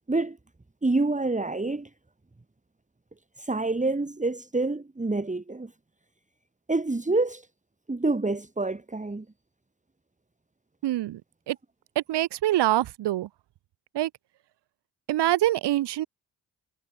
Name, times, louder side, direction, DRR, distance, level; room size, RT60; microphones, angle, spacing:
voice 1, 0.8-1.9 3.4-5.7 6.7-7.5 7.9-9.2, right 2 dB, 15° right, 2.3 m, -27 dB
voice 2, 10.8-11.2 11.5-11.6 12.0-13.3 13.9-14.1 15.1-16.1, right 14 dB, 55° right, 1.0 m, -25 dB
hypercardioid pair, 40°, 48 cm